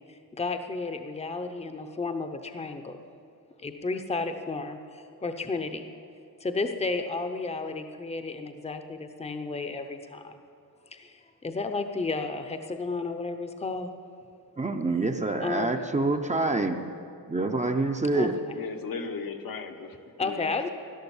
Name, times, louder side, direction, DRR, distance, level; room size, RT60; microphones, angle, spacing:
voice 1, 0.0-3.0 3.6-5.9 6.4-10.4 10.9-13.9 15.4-15.8 18.1-18.6 20.2-20.7, left 3 dB, 20° left, 7 dB, 0.7 m, -33 dB
voice 2, 14.6-16.8 17.3-18.3, right 3 dB, 20° right, 5 dB, 0.7 m, -26 dB
voice 3, 18.5-20.5, left 5 dB, 75° left, 4 dB, 1.3 m, -37 dB
16.0 x 11.5 x 7.2 m, 2.5 s
wide cardioid pair, 160°, 35 cm